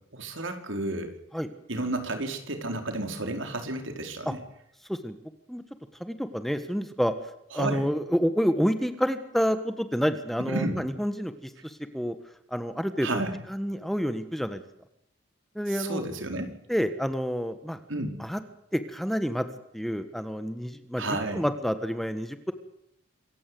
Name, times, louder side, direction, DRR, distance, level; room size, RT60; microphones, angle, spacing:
voice 1, 0.1-1.1 1.7-4.4 7.5-7.9 10.5-10.8 13.0-13.4 15.7-16.5 17.9-18.2 21.0-21.5, right 2 dB, 75° right, 5 dB, 4.7 m, -32 dB
voice 2, 6.0-7.1 7.5-12.2 12.5-13.2 13.5-14.7 15.5-16.0 16.7-17.8 18.2-18.4 18.7-19.5 19.7-21.0 21.3-22.5, equal, ahead, 9 dB, 1.4 m, -28 dB
26.5 x 15.5 x 7.8 m, 0.77 s
head